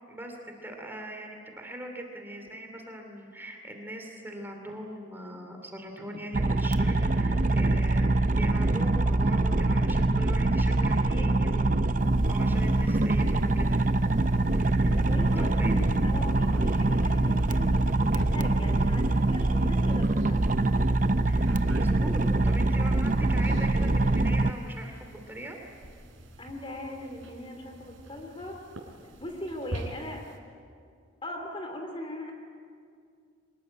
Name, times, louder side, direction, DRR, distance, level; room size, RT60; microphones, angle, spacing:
voice 1, 0.1-11.8 12.3-13.8 14.5-15.0 15.4-15.8 21.3-25.6, right 1 dB, 10° right, 2 dB, 2.7 m, -41 dB
sound 1, 6.3-24.5, right 2 dB, 40° right, 0.7 m, -24 dB
voice 2, 7.3-7.6 10.7-11.3 14.9-20.4 26.4-28.6 29.2-30.2 31.2-32.3, left 1 dB, 25° left, 4 dB, 2.7 m, -39 dB
sound 2, 12.0-30.4, right 1 dB, 90° right, 4.0 m, -44 dB
24.5 x 20.0 x 9.8 m, 2.3 s
head